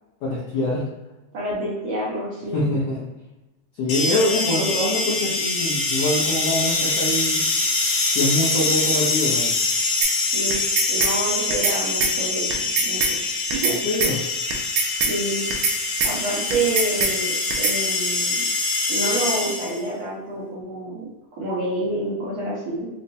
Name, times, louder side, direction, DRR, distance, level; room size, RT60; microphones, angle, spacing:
voice 1, 0.2-0.9 2.5-3.0 3.7-7.4 8.1-9.5 13.8-14.2, left 1 dB, 85° left, -7 dB, 1.4 m, -24 dB
voice 2, 1.3-2.6 10.3-10.6 10.9-13.0 13.5-13.8 14.8-15.5 16.0-18.4 18.9-22.9, right 1 dB, 65° right, -8 dB, 1.8 m, -28 dB
sound 1, 3.9-19.9, left 3 dB, 65° left, 1.8 m, -24 dB
sound 2, 10.0-10.1 10.5-11.1 11.5-11.8 12.0-12.1 12.5-13.1 13.5-13.8 14.0-14.1 14.5-15.1 15.5-15.8 16.0-16.1 16.5-17.1 17.5-17.8, right 5 dB, 80° right, 1.8 m, -22 dB
5.7 x 2.1 x 2.7 m, 1.0 s
omnidirectional pair, 4.0 m